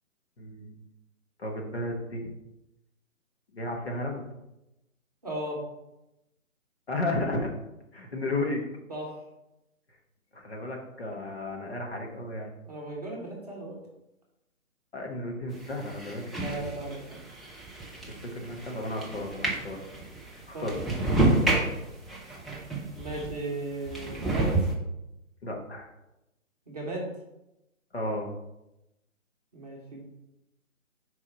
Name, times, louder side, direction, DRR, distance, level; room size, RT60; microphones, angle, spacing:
voice 1, 0.4-0.8 1.4-2.3 3.5-4.3 6.9-7.5 7.9-8.6 10.3-12.5 14.9-16.3 18.1-19.8 20.5-20.7 25.4-25.9 27.9-28.3, left 1 dB, 45° left, 1 dB, 1.2 m, -33 dB
voice 2, 5.2-5.6 8.9-9.2 12.7-13.8 16.3-17.2 20.5-21.2 22.9-24.5 26.7-27.1 29.5-30.1, right 1 dB, 30° right, -3 dB, 1.1 m, -36 dB
sound 1, 15.5-23.4 23.9-24.7, right 2 dB, ahead, 0.4 m, -30 dB
4.7 x 4.0 x 5.5 m, 0.92 s
hypercardioid pair, 175°, 42 cm